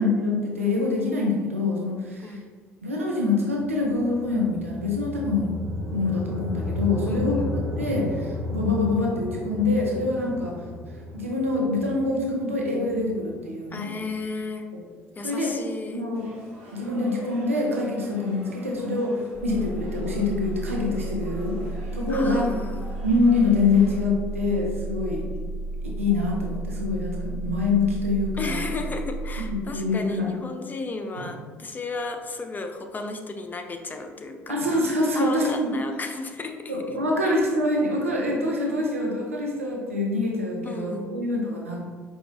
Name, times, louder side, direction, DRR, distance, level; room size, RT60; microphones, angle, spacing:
voice 1, 0.0-2.4 2.8-5.6 5.9-10.6 11.1-14.0 15.2-15.5 15.9-16.2 16.7-21.6 21.9-22.5 23.0-25.3 26.0-28.6 29.4-29.5 29.7-30.3 31.2-31.3 34.5-35.8 36.7-41.8, left 2 dB, 90° right, -1 dB, 0.6 m, -25 dB
sound 1, 3.5-13.8, left 1 dB, 35° right, 0.6 m, -33 dB
voice 2, 7.0-7.6 13.7-14.7 15.2-16.0 22.1-23.0 28.4-34.6 35.2-36.7 37.2-37.3 40.6-41.2, left 3 dB, 25° left, 5 dB, 0.5 m, -34 dB
sound 2, 16.1-24.0, right 1 dB, 70° right, 0.9 m, -45 dB
sound 3, 19.3-29.4, right 2 dB, 10° right, 1.4 m, -33 dB
5.1 x 2.3 x 2.9 m, 1.5 s
figure-of-eight pair, 55°, 7 cm